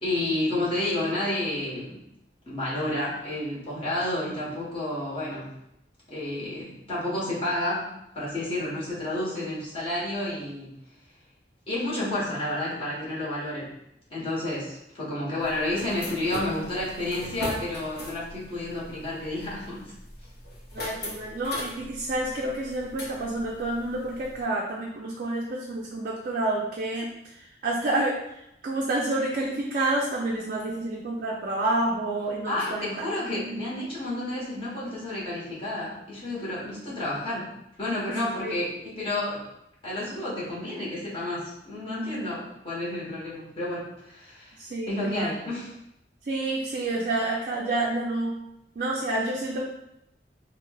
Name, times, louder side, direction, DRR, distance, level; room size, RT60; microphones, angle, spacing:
voice 1, 0.0-2.0 2.5-5.5 6.1-7.9 8.1-10.7 11.7-13.7 14.1-19.8 32.5-37.5 37.8-39.4 39.8-44.6 44.9-45.7, left 1 dB, 35° left, -7 dB, 1.1 m, -30 dB
sound 1, 15.4-24.4, left 1 dB, 60° left, 0.7 m, -40 dB
voice 2, 20.7-33.7 38.2-38.6 44.6-45.3 46.2-48.3 48.8-49.6, right 2 dB, 50° right, -3 dB, 0.4 m, -29 dB
4.4 x 2.0 x 2.2 m, 0.82 s
head